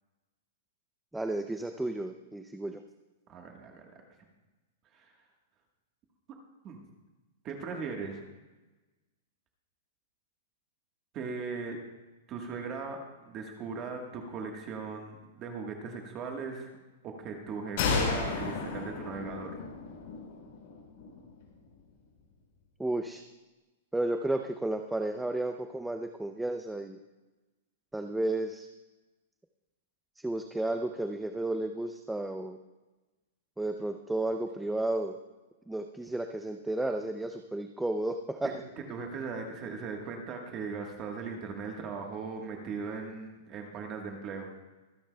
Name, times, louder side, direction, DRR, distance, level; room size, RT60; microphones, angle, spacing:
voice 1, 1.1-2.8 22.8-23.2 23.9-27.0 27.9-28.7 30.2-32.6 33.6-35.2 35.7-38.5, right 2 dB, 5° right, 6 dB, 0.4 m, -32 dB
voice 2, 3.3-4.0 4.9-5.1 6.3-6.4 6.6-6.8 7.4-8.2 11.1-11.8 12.3-13.0 13.2-16.7 17.0-19.5 38.4-38.5 38.9-44.5, right 5 dB, 25° right, 2 dB, 1.3 m, -38 dB
sound 1, 17.8-21.3, left 4 dB, 50° left, 4.1 m, -33 dB
24.0 x 10.0 x 2.2 m, 1.1 s
supercardioid pair, 175°, 0 cm